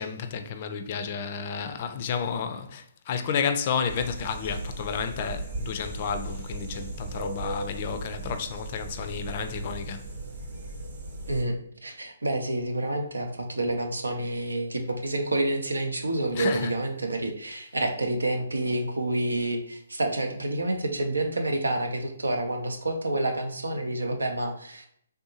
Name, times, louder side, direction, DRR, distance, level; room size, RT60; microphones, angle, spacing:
voice 1, 0.0-10.1 16.3-16.7, left 6 dB, 40° left, 0.4 m, -31 dB
sound 1, 3.9-11.4, right 2 dB, 55° right, 0.9 m, -37 dB
voice 2, 11.8-24.9, right 1 dB, 85° right, 0.7 m, -28 dB
3.4 x 2.6 x 2.8 m
figure-of-eight pair, 140°, 0 cm